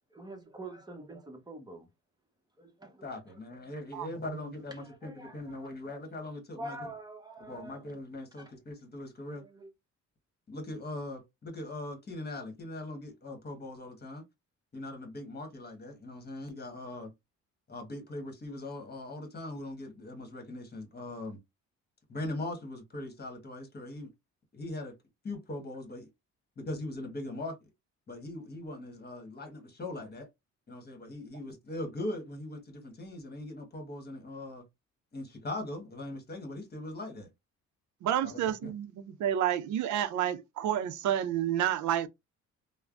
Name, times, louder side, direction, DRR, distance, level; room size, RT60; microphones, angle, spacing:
voice 1, 0.2-1.9 2.6-3.7 4.8-6.0 6.6-7.8 8.4-8.5 9.3-9.7, right 1 dB, 15° right, 0.9 m, -46 dB
voice 2, 3.0-6.9 7.4-9.4 10.5-14.2 14.7-17.1 17.7-21.4 22.1-24.1 24.5-24.9 25.2-26.1 26.6-27.6 28.1-30.3 30.7-34.6 35.1-37.3 38.2-38.7, left 2 dB, 30° left, 1.3 m, -40 dB
voice 3, 38.0-38.9 39.2-42.1, right 10 dB, 70° right, 0.5 m, -29 dB
3.2 x 2.1 x 2.5 m
cardioid pair, 90°, 30 cm